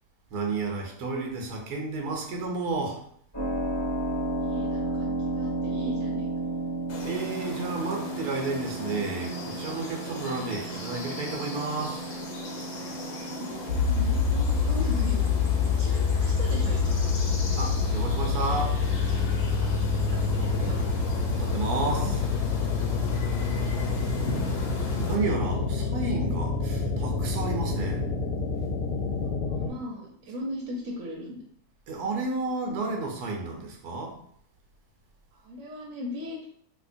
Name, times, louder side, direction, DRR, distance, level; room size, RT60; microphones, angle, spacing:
voice 1, 0.3-3.0 7.0-12.0 17.6-18.7 21.4-22.2 25.1-28.0 31.9-34.1, right 3 dB, 85° right, 2 dB, 1.3 m, -31 dB
Keyboard (musical), 3.3-15.9, right 2 dB, 15° left, 0.9 m, -34 dB
voice 2, 4.4-6.3 13.2-16.9 20.0-20.8 29.4-31.4 35.3-36.4, equal, 65° right, -3 dB, 1.1 m, -38 dB
sound 1, 6.9-25.2, left 3 dB, 60° left, 1.0 m, -39 dB
sound 2, 13.7-29.7, left 5 dB, 85° left, 1.1 m, -26 dB
3.5 x 2.8 x 2.5 m, 0.64 s
omnidirectional pair, 1.6 m